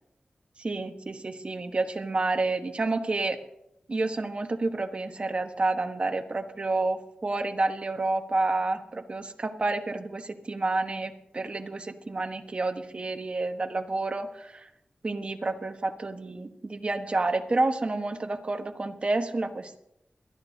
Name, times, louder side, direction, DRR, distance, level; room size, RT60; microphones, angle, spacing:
voice 1, 0.6-3.4 3.9-14.7 15.0-19.8, right 2 dB, 40° right, 6 dB, 1.2 m, -29 dB
22.0 x 13.5 x 2.8 m, 0.80 s
wide cardioid pair, 115°, 3 cm